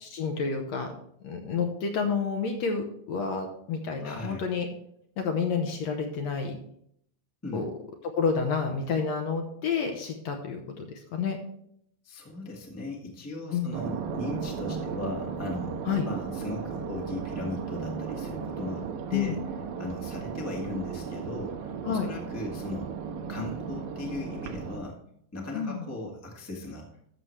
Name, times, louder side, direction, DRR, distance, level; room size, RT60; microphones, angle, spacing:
voice 1, 0.0-0.9 1.2-4.7 5.2-6.6 7.5-7.7 8.2-11.4 13.5-13.7 15.9-16.1 19.1-19.4 21.8-22.1 25.5-25.9, left 5 dB, 65° left, 3 dB, 1.9 m, -29 dB
voice 2, 4.0-4.4 7.4-7.6 12.0-15.8 16.1-19.4 19.8-22.9 23.3-25.0 25.3-26.9, left 2 dB, 10° left, -1 dB, 0.7 m, -37 dB
sound 1, 13.7-24.8, right 6 dB, 90° right, 2.7 m, -35 dB
13.5 x 6.8 x 3.2 m, 0.69 s
omnidirectional pair, 3.8 m